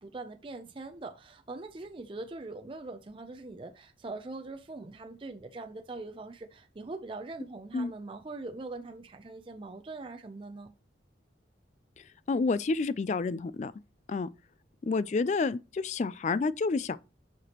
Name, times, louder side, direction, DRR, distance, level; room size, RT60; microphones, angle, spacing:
voice 1, 0.0-10.7, right 3 dB, 25° right, 0.5 m, -42 dB
voice 2, 12.3-13.7 14.1-14.3 14.8-17.0, left 4 dB, 35° left, 0.3 m, -29 dB
7.9 x 5.9 x 2.9 m
head